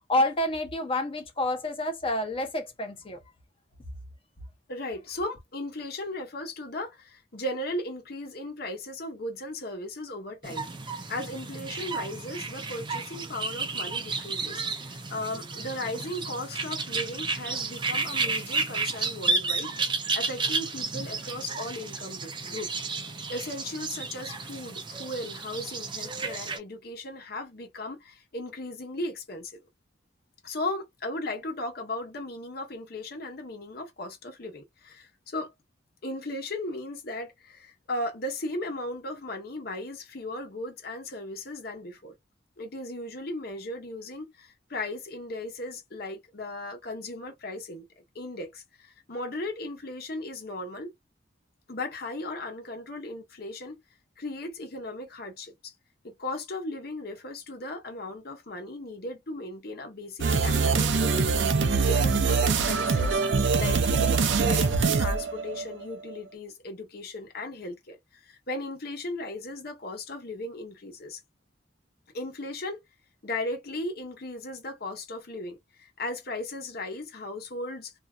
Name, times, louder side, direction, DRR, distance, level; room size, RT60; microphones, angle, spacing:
voice 1, 0.1-3.2, left 1 dB, 30° left, 0.8 m, -28 dB
voice 2, 4.7-19.7 20.1-23.0 23.3-29.6 30.4-35.5 36.0-42.1 42.6-50.9 51.7-53.8 54.2-55.7 56.0-61.3 61.6-63.2 63.5-71.2 72.1-72.8 73.2-77.9, left 1 dB, 60° left, 1.0 m, -36 dB
sound 1, 10.4-26.6, right 4 dB, 25° right, 0.5 m, -32 dB
sound 2, 60.2-65.9, right 4 dB, 75° right, 0.5 m, -24 dB
2.7 x 2.2 x 2.3 m
head